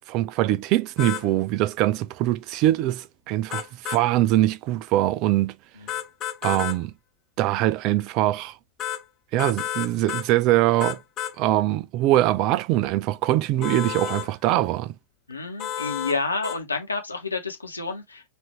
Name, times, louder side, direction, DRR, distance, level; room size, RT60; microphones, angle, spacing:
voice 1, 0.1-5.6 6.4-6.9 7.4-8.6 9.3-11.0 11.4-14.9, right 15 dB, 40° right, 0.3 m, -22 dB
sound 1, 1.0-1.3 3.5-4.0 5.9-6.8 8.8-9.0 9.4-10.3 10.8-11.4 13.6-14.3 15.6-16.2 16.4-16.6, left 11 dB, 30° left, 0.6 m, -31 dB
voice 2, 15.3-18.2, left 3 dB, 80° left, 1.0 m, -29 dB
4.3 x 2.6 x 3.2 m
figure-of-eight pair, 90°, 0 cm